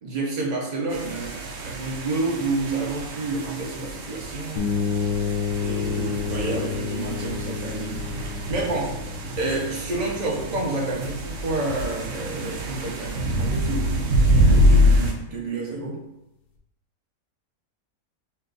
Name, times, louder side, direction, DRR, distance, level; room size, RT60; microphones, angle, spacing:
voice 1, 0.0-4.8 5.6-8.2 8.5-9.0 9.4-16.0, right 2 dB, 40° right, -2 dB, 0.7 m, -29 dB
sound 1, 0.9-15.1, equal, 65° right, 0.9 m, -25 dB
sound 2, 4.6-12.3, left 7 dB, 55° left, 0.6 m, -31 dB
6.7 x 2.3 x 2.5 m, 0.91 s
omnidirectional pair, 1.6 m